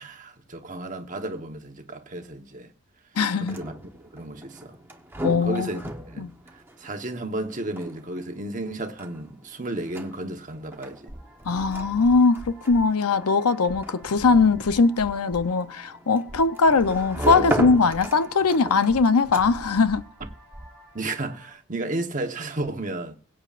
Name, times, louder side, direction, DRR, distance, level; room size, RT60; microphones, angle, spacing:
voice 1, 0.0-2.7 3.3-3.7 4.1-4.8 5.4-5.8 6.1-11.1 20.9-23.2, right 2 dB, 35° right, 1.1 m, -33 dB
voice 2, 3.2-3.6 5.2-5.7 6.2-6.3 11.5-20.0, left 4 dB, 90° left, 0.7 m, -21 dB
sound 1, 3.3-19.8, right 1 dB, 10° right, 1.0 m, -36 dB
sound 2, 11.1-21.5, equal, 10° left, 6.7 m, -44 dB
22.5 x 8.7 x 2.5 m
head